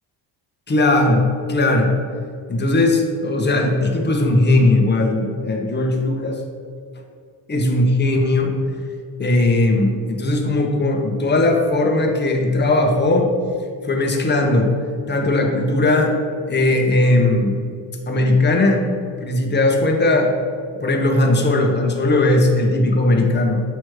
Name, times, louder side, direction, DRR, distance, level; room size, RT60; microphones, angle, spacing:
voice 1, 0.7-1.9 2.5-6.4 7.5-8.5 9.2-13.3 13.8-14.8 15.1-16.2 16.5-17.6 18.1-18.9 19.2-20.3 20.8-23.6, left 2 dB, 25° left, 2 dB, 1.0 m, -18 dB
7.8 x 3.1 x 4.8 m, 2.2 s
cardioid pair, 100°, 45 cm